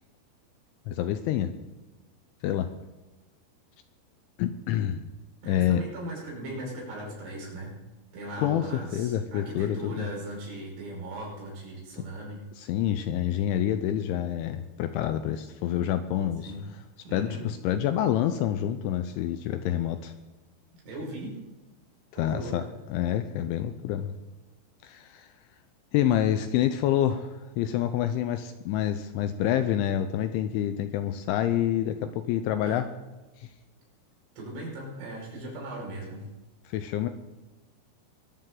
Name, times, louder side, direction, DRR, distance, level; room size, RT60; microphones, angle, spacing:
voice 1, 0.9-1.5 2.4-2.7 4.4-5.0 5.5-5.8 8.4-8.7 8.9-10.1 12.6-16.5 17.1-20.1 22.2-22.6 22.9-24.1 24.8-25.3 25.9-32.9 33.4-33.5 36.7-37.1, left 11 dB, 80° left, 9 dB, 2.9 m, -27 dB
voice 2, 5.4-7.8 8.1-12.4 16.4-16.7 17.0-17.4 20.8-21.4 22.2-22.7 32.6-32.8 34.4-36.3, right 1 dB, 65° right, -3 dB, 7.7 m, -38 dB
23.0 x 13.5 x 3.9 m, 1.1 s
omnidirectional pair, 5.9 m